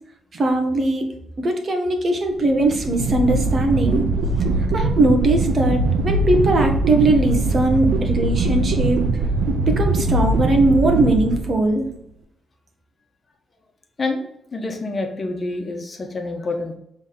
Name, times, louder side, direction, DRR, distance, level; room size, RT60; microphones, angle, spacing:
voice 1, 0.3-1.1 1.4-4.0 4.7-9.0 9.7-11.9, right 2 dB, 45° right, 4 dB, 1.3 m, -20 dB
sound 1, 2.4-11.9, right 2 dB, 75° right, 0.8 m, -21 dB
voice 2, 14.5-16.8, left 2 dB, 35° left, 4 dB, 1.2 m, -27 dB
7.2 x 3.6 x 4.2 m, 0.75 s
cardioid pair, 95°, 0 cm